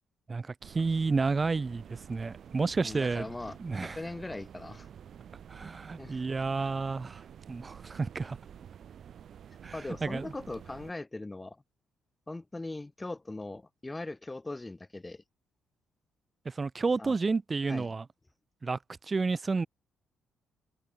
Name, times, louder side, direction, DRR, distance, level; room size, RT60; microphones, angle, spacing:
voice 1, 0.3-3.3 3.6-4.0 5.5-8.4 9.6-10.3 16.5-18.1 18.6-19.7, right 4 dB, 30° right, 0.4 m, -31 dB
sound 1, 0.6-10.9, right 8 dB, 60° right, 1.2 m, -50 dB
voice 2, 2.8-4.9 6.0-6.2 9.7-11.6 12.3-15.2 17.0-17.1 17.7-17.9, left 2 dB, 15° left, 3.6 m, -40 dB
cardioid pair, 90°, 0 cm